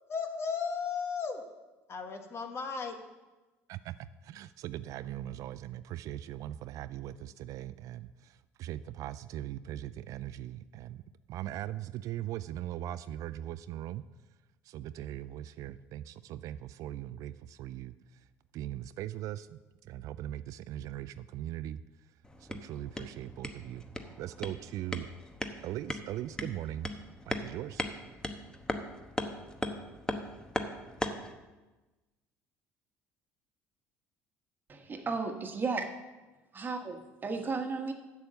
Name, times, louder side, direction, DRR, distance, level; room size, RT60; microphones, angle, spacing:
voice 1, 0.1-1.4 1.9-3.0, left 5 dB, 45° left, 5 dB, 1.5 m, -35 dB
voice 2, 3.7-11.0 11.3-14.0 14.6-18.3 18.5-22.1 22.4-23.9 24.2-25.1 25.6-26.9 27.3-27.8, right 13 dB, 60° right, 14 dB, 0.3 m, -40 dB
sound 1, 22.2-31.3, left 1 dB, 10° left, 1.0 m, -39 dB
voice 3, 34.7-35.9 36.5-37.9, right 4 dB, 30° right, 5 dB, 1.4 m, -34 dB
7.2 x 7.0 x 7.8 m, 1.1 s
hypercardioid pair, 75°, 6 cm